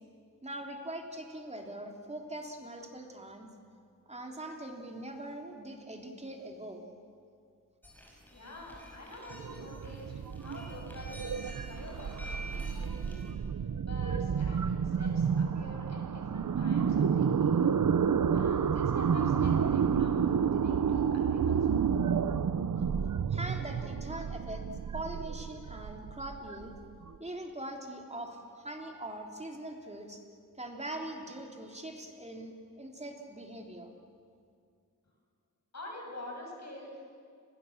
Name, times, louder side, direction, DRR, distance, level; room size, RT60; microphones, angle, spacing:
voice 1, 0.4-3.5 4.1-6.8 23.3-24.6 24.9-26.7 27.2-30.2 30.6-33.9, right 1 dB, 20° right, 2 dB, 3.2 m, -42 dB
sound 1, 7.8-13.3, right 1 dB, 5° left, 5.9 m, -49 dB
voice 2, 8.3-11.2 11.6-13.3 13.9-18.0 18.3-21.8 35.7-37.0, left 2 dB, 55° left, 0 dB, 7.2 m, -47 dB
sound 2, 9.3-27.1, right 7 dB, 75° right, 0.9 m, -30 dB
29.5 x 22.0 x 7.3 m, 2.2 s
wide cardioid pair, 110°, 32 cm